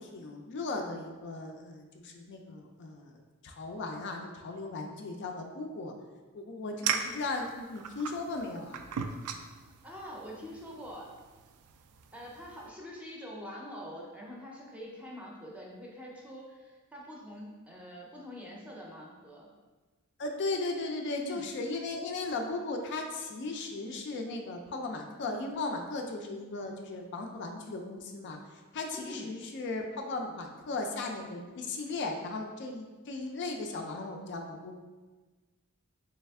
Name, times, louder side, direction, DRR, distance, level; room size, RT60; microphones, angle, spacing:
voice 1, 0.0-5.9 6.3-8.9 20.2-28.4 28.7-34.8, left 3 dB, 55° left, 3 dB, 0.4 m, -37 dB
sound 1, 6.8-12.7, right 7 dB, 80° right, 0.3 m, -39 dB
voice 2, 9.8-11.1 12.1-19.5 21.2-21.5 28.9-29.4, equal, 5° right, -3 dB, 0.6 m, -45 dB
3.4 x 3.2 x 3.5 m, 1.3 s
head